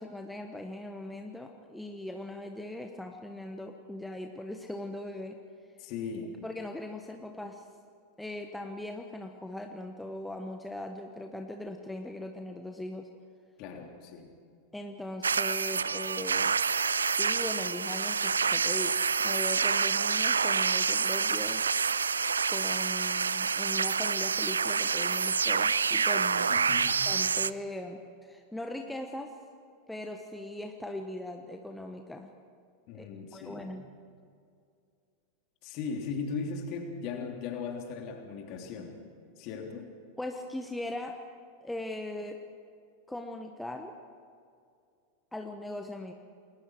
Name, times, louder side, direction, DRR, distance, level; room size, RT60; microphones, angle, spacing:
voice 1, 0.0-5.4 6.4-7.6 8.2-13.1 14.7-16.5 17.1-21.6 22.5-26.5 27.0-29.3 29.9-32.3 32.9-33.1 33.3-33.8 40.2-41.2 41.6-42.4 43.1-43.9 45.3-46.1, left 1 dB, 5° left, 4 dB, 1.3 m, -39 dB
voice 2, 5.8-6.4 13.6-14.3 26.5-27.0 32.9-33.7 35.6-39.0 39.4-39.9, left 5 dB, 45° left, 2 dB, 3.3 m, -38 dB
sound 1, 15.2-27.5, right 5 dB, 75° right, 0.4 m, -27 dB
29.0 x 21.0 x 4.8 m, 2.3 s
figure-of-eight pair, 90°, 0 cm